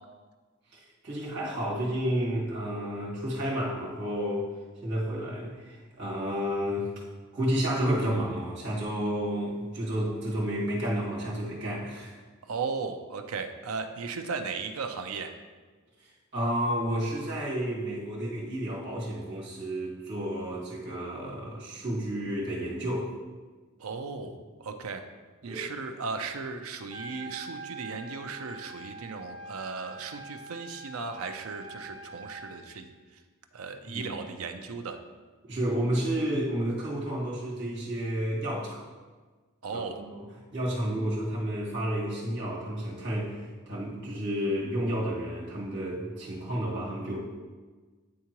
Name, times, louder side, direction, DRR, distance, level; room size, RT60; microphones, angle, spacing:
voice 1, 0.7-4.5 4.8-7.0 7.3-12.2 16.0-23.1 25.5-25.6 33.9-34.1 35.4-38.9 39.7-40.2 40.5-47.2, equal, 55° right, -6 dB, 1.9 m, -31 dB
voice 2, 12.4-15.3 23.8-25.0 25.4-33.2 33.5-35.0 39.6-40.0, right 4 dB, 90° right, 7 dB, 0.5 m, -36 dB
Trumpet, 26.8-32.6, right 3 dB, 20° right, 0.6 m, -44 dB
9.6 x 3.7 x 3.0 m, 1.4 s
head